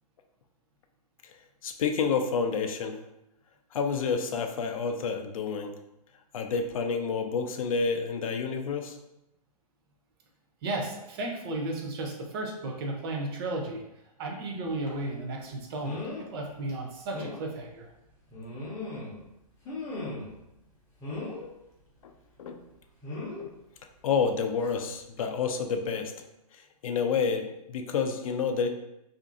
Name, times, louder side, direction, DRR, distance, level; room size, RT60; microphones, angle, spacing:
voice 1, 1.6-3.0 3.7-5.7 6.3-9.0 22.0-22.1 22.4-22.6 23.4-23.5 24.0-26.1 26.8-28.7, left 5 dB, 60° left, 5 dB, 0.4 m, -29 dB
voice 2, 10.6-13.8 14.2-17.9, right 2 dB, 40° right, 1 dB, 0.6 m, -34 dB
sound 1, 14.9-15.0 15.8-16.3 16.7-16.8 17.1-17.4 18.3-19.2 19.6-20.4 21.0-21.5 23.0-23.4 24.6-24.8 25.2-25.3, left 2 dB, 15° left, 0.6 m, -37 dB
2.6 x 2.5 x 2.5 m, 0.88 s
hypercardioid pair, 125°, 20 cm